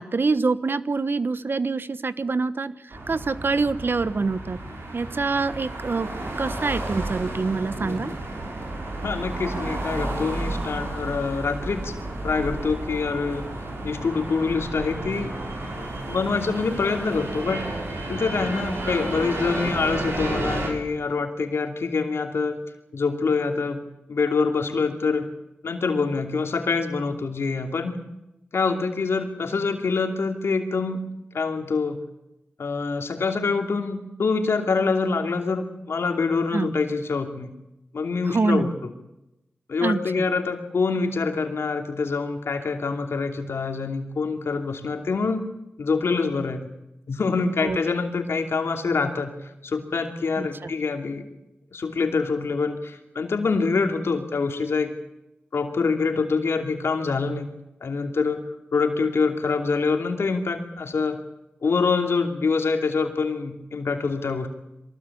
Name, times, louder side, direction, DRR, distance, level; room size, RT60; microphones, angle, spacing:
voice 1, 0.0-2.7 3.1-4.6 4.9-6.1 6.4-8.1 36.5-36.8 38.3-38.7 39.8-40.0 47.6-47.8 50.4-50.7, right 4 dB, 55° right, 14 dB, 1.1 m, -25 dB
sound 1, 2.9-20.7, right 2 dB, 75° right, 6.0 m, -32 dB
voice 2, 7.8-8.1 9.0-11.9 12.2-13.5 13.8-15.3 15.8-17.6 18.1-22.6 22.9-23.8 24.1-25.3 25.6-27.9 28.5-31.0 31.3-32.0 32.6-37.5 37.9-38.7 39.7-45.4 45.8-46.7 47.1-51.3 51.7-54.9 55.5-57.5 57.8-58.4 58.7-61.2 61.6-64.5, left 4 dB, 80° left, 5 dB, 2.8 m, -25 dB
23.0 x 19.0 x 8.6 m, 0.91 s
cardioid pair, 40°, 4 cm